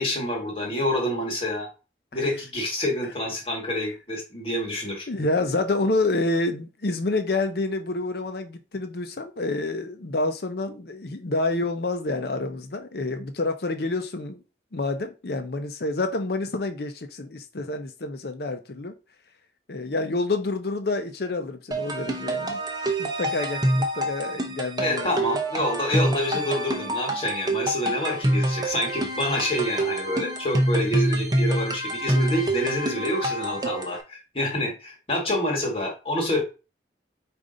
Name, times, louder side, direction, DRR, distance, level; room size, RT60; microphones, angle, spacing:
voice 1, 0.0-1.7 2.1-5.1 24.8-36.4, left 1 dB, 30° left, 1.4 m, -27 dB
voice 2, 5.1-14.4 14.7-19.0 19.7-22.6 23.0-25.1, left 2 dB, 65° left, 0.6 m, -28 dB
sound 1, 21.7-34.0, right 1 dB, 20° right, 0.6 m, -26 dB
4.9 x 2.6 x 3.8 m
head